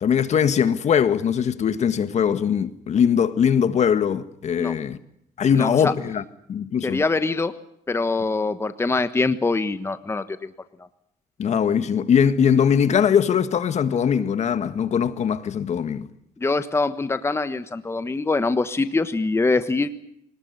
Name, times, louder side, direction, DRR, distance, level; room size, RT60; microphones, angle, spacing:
voice 1, 0.0-5.0 5.4-6.2 6.5-7.0 11.4-16.1, left 7 dB, 50° left, 1.7 m, -21 dB
voice 2, 5.5-5.9 6.8-7.5 7.9-10.5 16.4-19.9, left 3 dB, 15° left, 1.3 m, -24 dB
25.0 x 19.0 x 9.6 m
cardioid pair, 95°, 15 cm